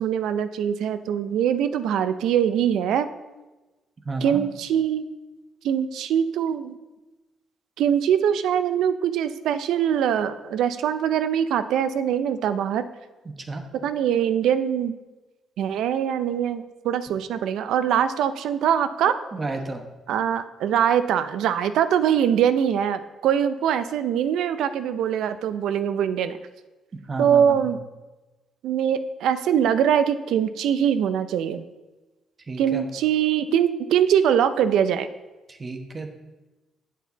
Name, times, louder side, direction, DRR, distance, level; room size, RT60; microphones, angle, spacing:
voice 1, 0.0-3.1 4.2-5.1 5.6-6.8 7.8-12.9 13.8-15.0 15.6-19.2 20.1-26.4 27.2-27.8 28.6-31.6 32.6-35.1, right 9 dB, 80° right, 11 dB, 0.5 m, -23 dB
voice 2, 4.0-4.4 13.5-13.6 19.0-19.8 27.1-27.7 32.5-32.8 35.5-36.2, right 3 dB, 35° right, 5 dB, 1.0 m, -32 dB
7.9 x 7.4 x 4.0 m, 1.1 s
cardioid pair, 90°, 0 cm